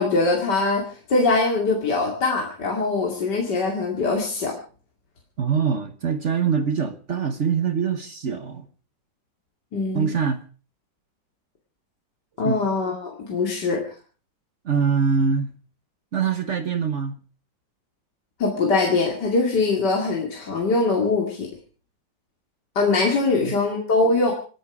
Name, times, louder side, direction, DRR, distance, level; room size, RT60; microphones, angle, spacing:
voice 1, 0.0-4.5 9.7-10.1 12.4-13.8 18.4-21.5 22.7-24.3, left 3 dB, 70° left, 3.1 m, -22 dB
voice 2, 5.4-8.7 9.9-10.4 12.4-12.6 14.6-15.5 16.1-17.2 23.3-23.6, right 6 dB, 45° right, 1.2 m, -24 dB
26.5 x 10.0 x 4.9 m
omnidirectional pair, 1.9 m